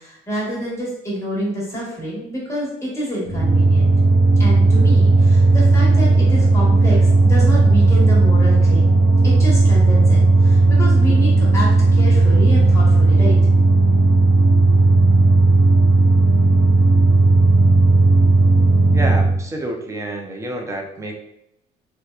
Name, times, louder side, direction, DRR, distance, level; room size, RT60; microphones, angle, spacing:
voice 1, 0.0-3.9 4.4-9.0 9.2-13.3, equal, 15° left, -6 dB, 1.2 m, -27 dB
sound 1, 3.3-19.4, right 2 dB, 70° right, 0.8 m, -14 dB
voice 2, 18.9-21.2, right 1 dB, 20° right, 1 dB, 0.4 m, -28 dB
2.9 x 2.1 x 2.3 m, 0.81 s
cardioid pair, 110°, 17 cm